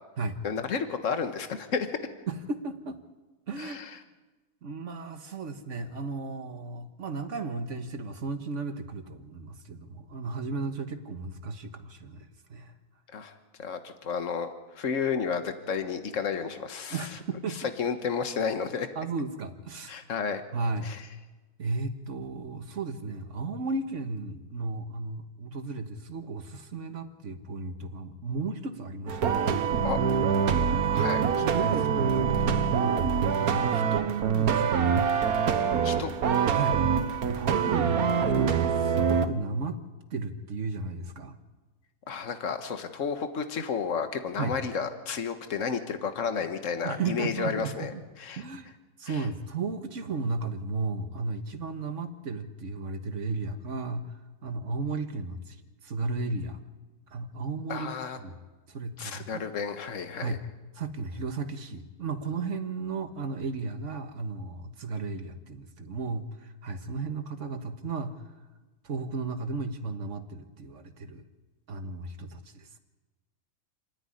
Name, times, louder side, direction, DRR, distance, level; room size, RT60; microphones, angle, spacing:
voice 1, 0.4-1.9 3.6-3.9 13.1-13.3 13.6-14.5 14.8-17.0 17.8-18.9 19.9-20.4 20.8-21.0 29.8-30.0 30.9-31.2 35.8-36.1 42.1-47.9 48.2-48.4 49.1-49.2 57.7-58.2 59.0-60.4, left 6 dB, 60° left, 8 dB, 1.7 m, -31 dB
voice 2, 2.3-3.0 3.5-3.8 4.6-12.7 16.9-17.7 19.0-20.0 20.5-20.9 21.6-29.7 30.8-35.1 36.5-36.8 37.3-39.8 40.1-41.4 44.4-44.6 46.8-48.0 48.4-48.7 49.0-55.6 55.8-56.6 57.1-58.4 58.7-59.4 60.2-60.4 60.7-68.2 68.8-71.3 71.7-72.8, right 3 dB, 55° right, 8 dB, 1.7 m, -34 dB
sound 1, 29.1-39.3, right 7 dB, 75° right, 1.6 m, -25 dB
29.0 x 10.0 x 9.9 m, 1.2 s
omnidirectional pair, 1.6 m